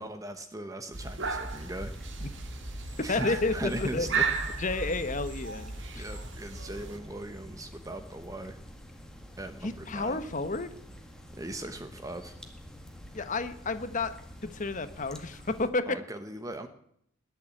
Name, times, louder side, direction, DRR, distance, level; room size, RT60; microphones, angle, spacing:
voice 1, 0.0-1.9 3.0-4.3 5.9-8.6 9.4-10.2 11.3-12.3 15.9-16.7, right 1 dB, 15° right, 8 dB, 0.9 m, -39 dB
sound 1, 0.9-7.0, right 4 dB, 65° right, 1.7 m, -35 dB
sound 2, 1.5-15.7, equal, 5° left, 1.9 m, -48 dB
voice 2, 3.1-4.1 4.6-6.0 9.6-10.7 13.1-14.1 14.4-16.0, left 3 dB, 40° left, 11 dB, 1.1 m, -31 dB
20.5 x 7.1 x 8.6 m, 0.72 s
head